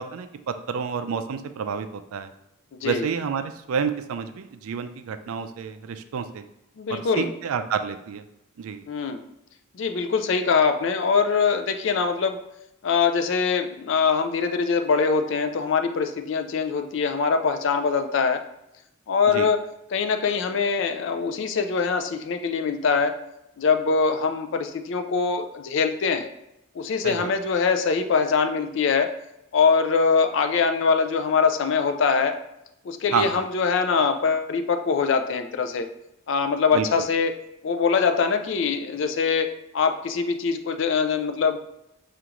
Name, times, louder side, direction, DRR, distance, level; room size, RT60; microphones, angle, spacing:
voice 1, 0.0-2.3 2.8-6.5 6.9-8.2 8.6-8.8 19.3-19.5 27.0-27.3 33.1-33.5 36.7-36.9, right 6 dB, 80° right, 9 dB, 0.4 m, -29 dB
voice 2, 2.7-3.0 6.8-7.3 8.9-9.2 9.7-12.4 12.8-18.4 19.1-19.6 19.9-23.1 23.6-26.3 26.8-29.1 29.5-32.4 32.8-35.9 36.3-37.3 37.6-39.5 39.7-41.6, left 5 dB, 60° left, 7 dB, 0.4 m, -23 dB
4.9 x 2.5 x 2.9 m, 0.84 s
head